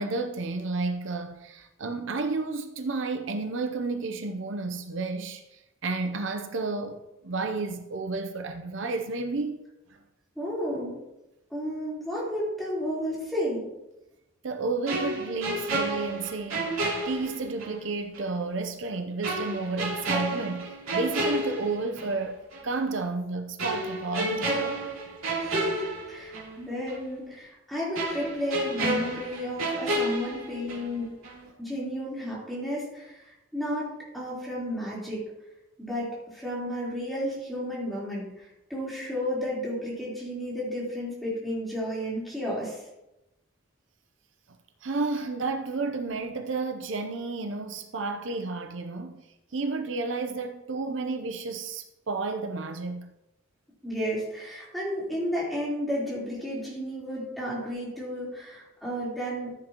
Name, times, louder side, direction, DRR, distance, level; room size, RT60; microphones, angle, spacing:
voice 1, 0.0-10.0 14.4-16.8 17.1-24.8 31.5-31.6 44.8-49.2 49.5-53.1, right 3 dB, 65° right, 0.7 m, -31 dB
voice 2, 10.4-11.0 11.5-13.6 25.4-31.1 31.6-35.2 35.8-42.8 53.8-59.5, equal, ahead, 3.8 m, -32 dB
sound 1, 14.9-17.8 18.1-18.3 19.2-22.2 22.5-22.7 23.6-26.6 26.9-27.0 27.9-31.0 31.2-31.5, right 1 dB, 85° right, 2.9 m, -31 dB
14.5 x 7.9 x 3.0 m
head